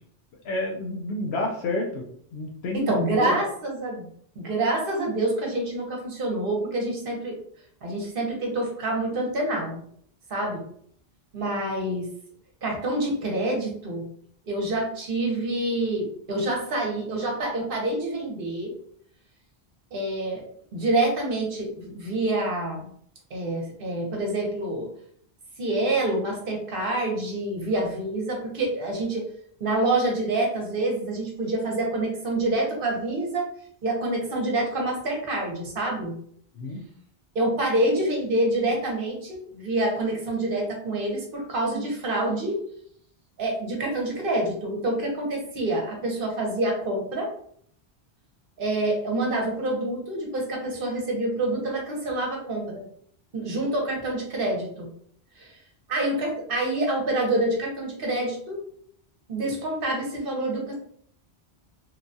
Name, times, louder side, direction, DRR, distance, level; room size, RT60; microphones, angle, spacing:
voice 1, 0.4-2.0 2.3-3.4 36.6-36.8, left 2 dB, 80° left, -1 dB, 0.9 m, -29 dB
voice 2, 2.7-4.1 4.4-7.4 7.8-9.8 10.3-10.6 11.3-12.1 12.6-14.1 14.4-18.7 19.9-20.4 20.7-22.9 23.3-24.9 25.6-29.3 29.6-33.5 33.8-36.2 37.3-42.6 43.4-47.3 48.6-52.8 53.3-54.9 55.4-55.5 55.9-58.6 59.3-60.7, right 1 dB, 60° right, 0 dB, 1.0 m, -27 dB
3.0 x 2.2 x 2.6 m, 0.63 s
omnidirectional pair, 1.1 m